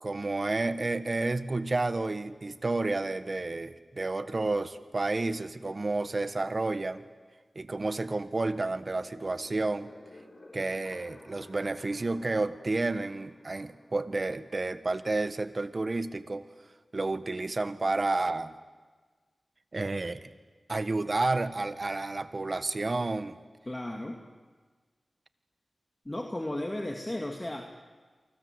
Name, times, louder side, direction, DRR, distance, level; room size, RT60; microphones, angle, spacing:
voice 1, 0.0-7.0 7.5-9.9 10.5-16.4 16.9-18.5 19.7-20.3 20.7-23.4, right 2 dB, 50° right, 12 dB, 1.5 m, -30 dB
sound 1, 8.2-14.8, left 1 dB, 50° left, 7.4 m, -54 dB
voice 2, 23.7-24.2 26.0-27.7, left 1 dB, 25° left, 2 dB, 2.6 m, -34 dB
29.0 x 24.5 x 8.1 m, 1.4 s
cardioid pair, 45°, 0 cm